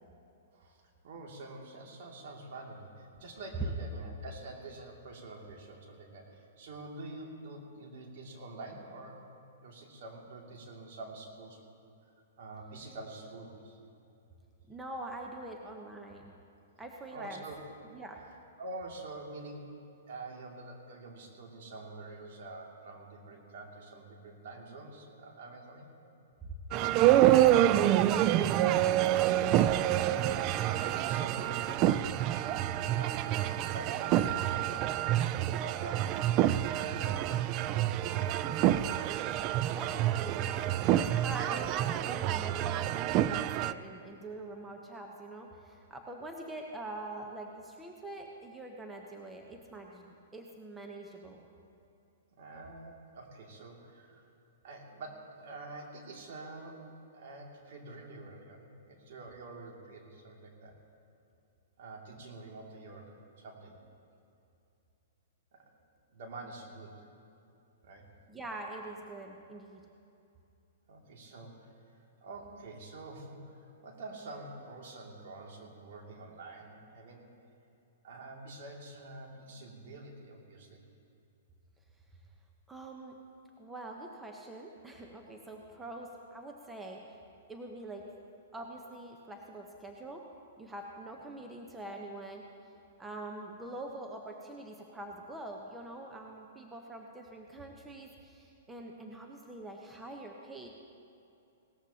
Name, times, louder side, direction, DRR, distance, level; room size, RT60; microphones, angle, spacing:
voice 1, 0.5-9.3 9.6-11.7 12.4-13.8 17.1-17.6 18.6-25.9 28.5-36.2 36.7-38.5 52.4-54.3 54.6-60.7 61.8-63.8 65.5-65.8 66.1-67.1 67.8-68.1 70.9-77.3 78.0-80.8, right 2 dB, 60° right, 0 dB, 2.5 m, -47 dB
voice 2, 14.7-16.3 16.8-17.4 17.9-18.2 26.8-27.8 39.7-51.4 68.3-69.8 82.7-83.2 83.6-87.0 87.5-88.0 88.5-90.2 90.6-92.4 93.0-100.7, right 2 dB, 10° right, 1 dB, 1.0 m, -44 dB
sound 1, 26.7-43.7, right 12 dB, 35° right, 0.3 m, -27 dB
18.5 x 14.0 x 2.9 m, 2.7 s
hypercardioid pair, 130°, 0 cm